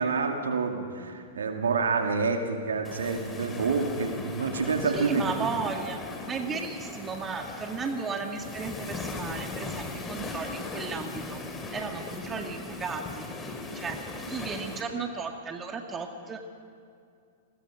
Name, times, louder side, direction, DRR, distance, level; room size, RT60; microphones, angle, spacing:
voice 1, 0.0-5.5, right 4 dB, 70° right, 4 dB, 2.3 m, -28 dB
sound 1, 2.8-14.8, left 3 dB, 15° left, 2.9 m, -38 dB
voice 2, 4.8-6.0 6.3-11.4 11.7-13.3 13.7-14.0 14.3-16.5, right 5 dB, 20° right, 4 dB, 2.0 m, -35 dB
29.5 x 21.0 x 5.1 m, 2.3 s
figure-of-eight pair, 100°, 0 cm